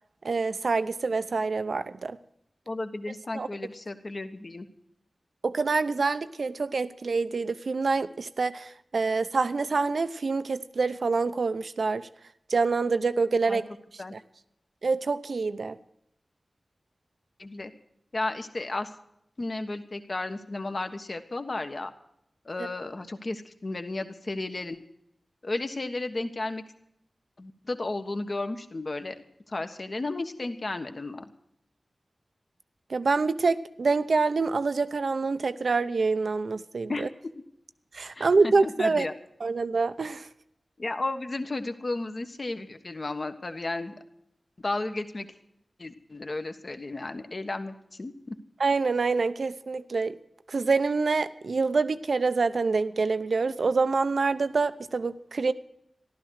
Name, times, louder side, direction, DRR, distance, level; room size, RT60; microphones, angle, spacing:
voice 1, 0.2-2.2 3.3-3.5 5.4-12.1 12.5-13.6 14.1-14.2 14.8-15.8 32.9-37.1 37.9-39.1 39.4-40.3 48.6-50.1 50.5-55.5, right 4 dB, 75° right, 13 dB, 0.7 m, -26 dB
voice 2, 2.7-4.6 13.5-13.6 14.0-14.1 17.4-17.7 18.1-18.9 19.4-21.9 22.4-24.8 25.4-26.6 27.4-31.2 36.9-37.1 38.1-39.1 40.8-43.9 44.6-45.3 45.8-48.3, left 2 dB, 50° left, 7 dB, 1.3 m, -33 dB
15.0 x 12.5 x 6.4 m, 0.75 s
wide cardioid pair, 65°, 0 cm